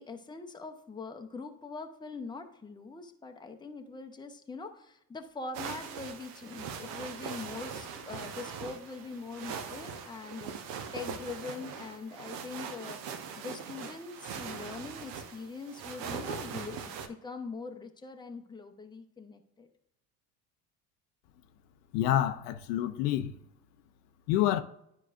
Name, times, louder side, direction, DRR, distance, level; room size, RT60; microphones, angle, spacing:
voice 1, 0.0-13.0 13.4-19.7, left 4 dB, 10° left, 0.8 m, -43 dB
sound 1, 5.5-17.1, right 6 dB, 55° right, 1.0 m, -41 dB
voice 2, 21.9-23.3 24.3-24.6, left 12 dB, 70° left, 0.7 m, -27 dB
11.0 x 4.9 x 2.5 m
hypercardioid pair, 75°, 50 cm